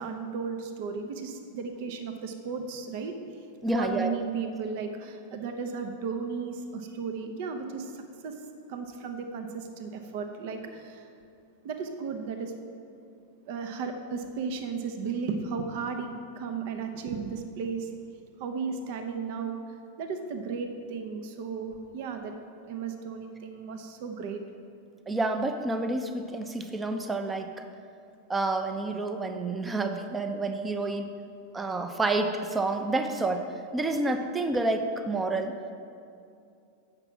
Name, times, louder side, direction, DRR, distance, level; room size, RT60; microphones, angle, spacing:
voice 1, 0.0-3.2 3.7-8.4 8.7-11.1 11.6-12.5 13.5-16.1 16.4-17.9 18.4-19.6 20.0-22.3 22.7-24.4, right 5 dB, 50° right, 6 dB, 0.8 m, -35 dB
voice 2, 3.6-4.1 25.1-27.5 28.3-31.1 31.5-33.5 33.7-35.5, right 2 dB, 15° right, 7 dB, 0.7 m, -29 dB
7.8 x 6.0 x 7.5 m, 2.5 s
figure-of-eight pair, 90°, 0 cm